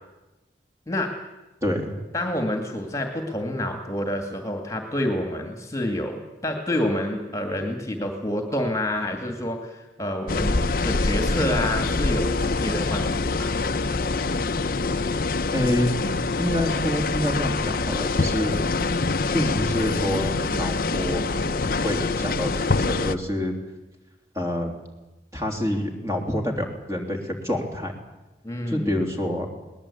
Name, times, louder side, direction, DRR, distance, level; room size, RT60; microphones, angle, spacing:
voice 1, 1.6-1.9 15.5-15.9 16.4-18.6 19.3-21.3 21.8-23.5 24.3-24.7 25.3-27.9 28.7-29.5, left 1 dB, 15° right, 2 dB, 3.4 m, -27 dB
voice 2, 2.1-10.6 10.8-13.5 28.4-28.9, left 1 dB, 15° left, 4 dB, 2.2 m, -28 dB
sound 1, 10.3-23.1, left 3 dB, 55° left, 0.8 m, -25 dB
22.0 x 19.0 x 8.6 m, 1.1 s
head